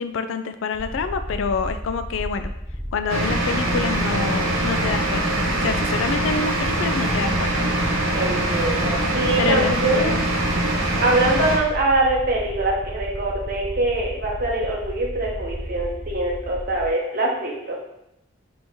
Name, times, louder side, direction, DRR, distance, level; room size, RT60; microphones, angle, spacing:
voice 1, 0.0-2.5 2.9-7.7 9.4-10.3, left 5 dB, 70° left, 9 dB, 0.3 m, -27 dB
sound 1, 0.7-16.9, equal, 5° left, 0.8 m, -33 dB
sound 2, 3.1-11.6, right 1 dB, 90° right, 1.0 m, -23 dB
voice 2, 8.1-10.2 11.0-17.8, right 2 dB, 50° right, -2 dB, 0.9 m, -23 dB
4.0 x 3.0 x 3.5 m, 0.83 s
head